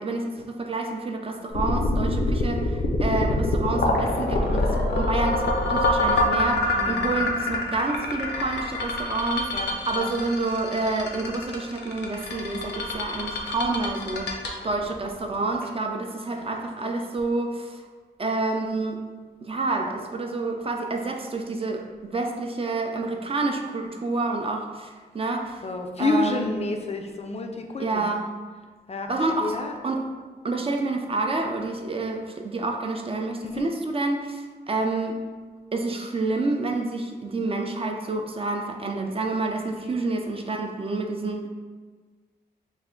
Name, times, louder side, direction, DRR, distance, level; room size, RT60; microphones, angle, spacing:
voice 1, 0.0-9.5 9.9-17.8 18.2-19.0 19.4-25.6 26.0-26.5 27.8-28.3 29.1-29.5 29.8-30.0 30.4-35.2 35.7-41.5, right 3 dB, 35° right, 2 dB, 0.4 m, -28 dB
sound 1, 1.5-15.6, left 2 dB, 85° left, 0.6 m, -25 dB
voice 2, 6.7-7.2 9.5-10.1 16.3-17.0 25.6-28.2 28.9-29.8 33.4-33.7 39.7-40.0, left 3 dB, 35° left, 3 dB, 0.3 m, -30 dB
3.3 x 2.1 x 3.7 m, 1.4 s
cardioid pair, 75°, 18 cm